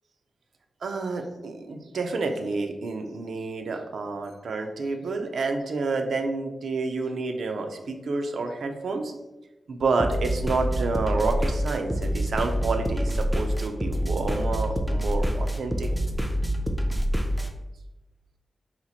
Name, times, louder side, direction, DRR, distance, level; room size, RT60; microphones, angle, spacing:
voice 1, 0.8-9.1 9.7-15.9, right 3 dB, 70° right, 5 dB, 0.4 m, -29 dB
sound 1, 10.0-17.5, equal, 5° right, 0.3 m, -26 dB
2.9 x 2.4 x 4.0 m, 1.0 s
wide cardioid pair, 165°, 0 cm